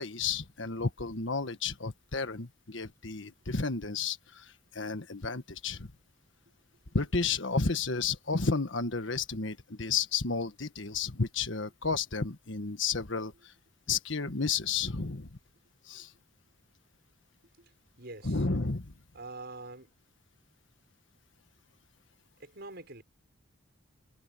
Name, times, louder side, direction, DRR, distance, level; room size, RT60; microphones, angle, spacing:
voice 1, 0.0-5.9 6.9-13.3 13.9-15.3 15.9-16.1 18.2-18.9, left 4 dB, 65° left, 1.5 m, -32 dB
voice 2, 17.6-18.5 19.1-19.9 22.4-23.0, right 2 dB, 55° right, 6.5 m, -45 dB
head